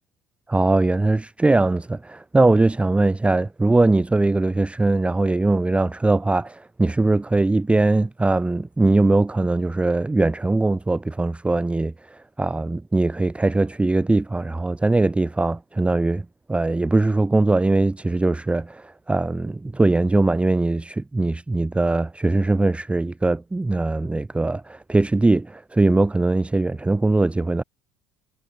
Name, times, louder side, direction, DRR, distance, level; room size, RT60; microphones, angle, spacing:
voice 1, 0.5-27.6, right 2 dB, 10° right, 1.0 m, -21 dB
figure-of-eight pair, 60°, 11 cm